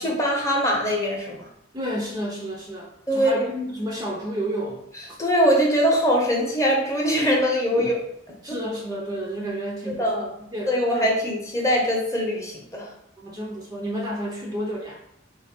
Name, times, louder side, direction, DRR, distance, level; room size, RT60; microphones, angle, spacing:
voice 1, 0.0-1.5 3.1-3.5 5.2-7.9 9.9-10.3 10.7-12.9, equal, 15° left, -1 dB, 0.8 m, -22 dB
voice 2, 1.7-5.2 7.7-7.9 8.4-11.1 13.2-15.0, equal, 20° right, -2 dB, 0.5 m, -31 dB
3.1 x 3.1 x 4.3 m, 0.76 s
head